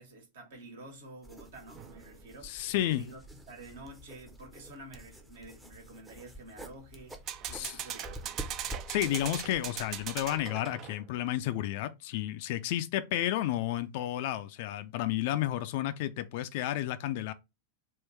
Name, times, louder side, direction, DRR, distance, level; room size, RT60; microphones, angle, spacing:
voice 1, 0.0-8.5, right 2 dB, 60° right, 1.4 m, -50 dB
sound 1, 1.2-10.5, right 1 dB, 10° right, 0.8 m, -48 dB
sound 2, 1.8-2.3 7.1-11.1, right 10 dB, 35° right, 0.5 m, -40 dB
voice 2, 2.4-3.1 7.5-7.8 8.9-17.3, left 13 dB, 50° left, 0.4 m, -32 dB
3.7 x 2.5 x 4.5 m
figure-of-eight pair, 90°, 0 cm